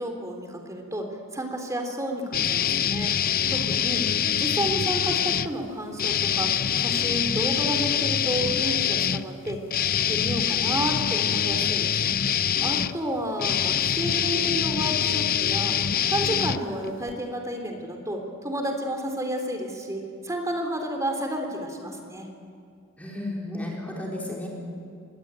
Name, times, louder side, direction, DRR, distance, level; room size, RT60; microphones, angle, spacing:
voice 1, 0.0-3.1 3.5-4.0 4.3-9.6 9.9-11.9 12.6-15.8 16.1-22.3, right 1 dB, 15° right, 3 dB, 3.2 m, -31 dB
sound 1, 2.3-5.5 6.0-17.1, left 9 dB, 45° left, 0.6 m, -25 dB
voice 2, 23.0-24.5, left 1 dB, 5° left, -3 dB, 4.2 m, -33 dB
28.0 x 22.0 x 9.0 m, 2.4 s
head